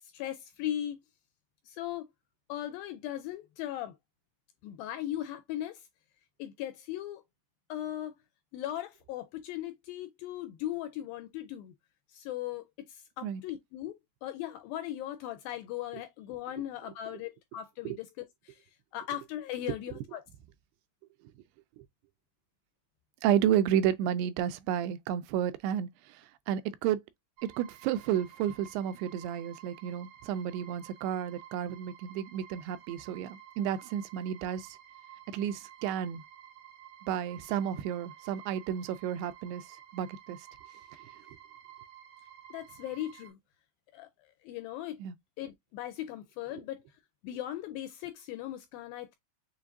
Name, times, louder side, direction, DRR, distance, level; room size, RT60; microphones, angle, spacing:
voice 1, 0.1-1.0 1.8-2.1 2.5-3.9 4.6-5.8 6.4-7.2 7.7-8.1 8.5-11.7 12.1-12.6 13.2-18.1 18.9-20.2 42.5-43.4 43.9-44.1 44.5-45.0 45.4-46.8 47.2-49.2, left 12 dB, 80° left, 2.1 m, -38 dB
voice 2, 23.2-26.2 26.5-27.0 27.4-34.8 35.3-36.2 37.1-39.6 39.9-40.4 45.0-45.2, right 10 dB, 90° right, 2.7 m, -31 dB
sound 1, 27.4-43.3, right 10 dB, 60° right, 2.3 m, -53 dB
6.9 x 2.5 x 2.5 m
omnidirectional pair, 4.6 m